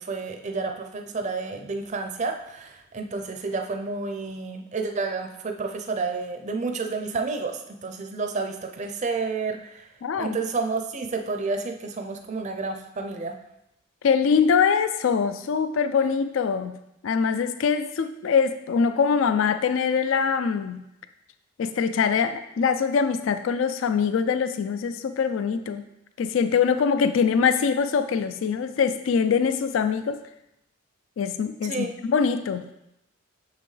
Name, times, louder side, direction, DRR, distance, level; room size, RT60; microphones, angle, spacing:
voice 1, 0.0-9.9 10.2-13.3 31.7-31.9, right 4 dB, 35° right, 4 dB, 0.5 m, -30 dB
voice 2, 10.0-10.4 14.0-16.7 17.0-20.8 21.6-25.8 26.2-30.2 31.2-32.7, left 6 dB, 70° left, 10 dB, 0.4 m, -23 dB
6.8 x 5.6 x 3.2 m, 0.84 s
head